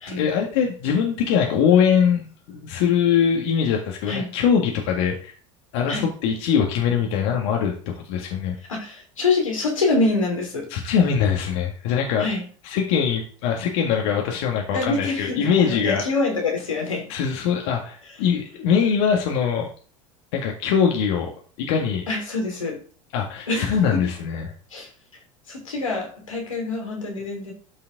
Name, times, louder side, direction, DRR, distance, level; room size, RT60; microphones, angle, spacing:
voice 1, 0.1-5.4 5.7-8.6 10.7-12.2 12.7-16.0 17.1-19.7 20.3-21.3 21.6-22.0 23.1-24.5, left 7 dB, 60° left, 1 dB, 1.9 m, -22 dB
voice 2, 8.7-10.7 12.2-12.4 14.7-17.1 22.1-22.8 23.5-24.0 24.7-24.9 25.5-27.5, left 3 dB, 80° left, 1 dB, 3.3 m, -25 dB
13.0 x 5.7 x 3.9 m, 0.43 s
figure-of-eight pair, 75°, 17 cm